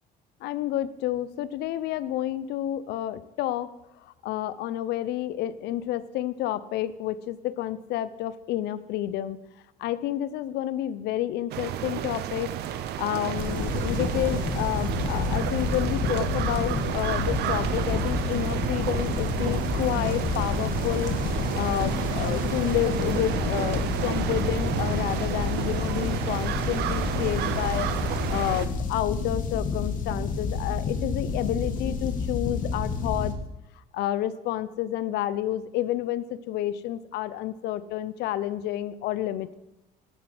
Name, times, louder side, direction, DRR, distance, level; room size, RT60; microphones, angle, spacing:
voice 1, 0.4-3.7 4.0-9.4 9.8-12.5 13.0-33.3 33.9-39.5, left 13 dB, 80° left, 16 dB, 0.5 m, -30 dB
sound 1, 11.5-28.7, right 11 dB, 75° right, 0.6 m, -31 dB
sound 2, 13.4-33.3, left 4 dB, 55° left, 1.3 m, -29 dB
10.5 x 5.9 x 4.9 m, 0.95 s
cardioid pair, 110°, 17 cm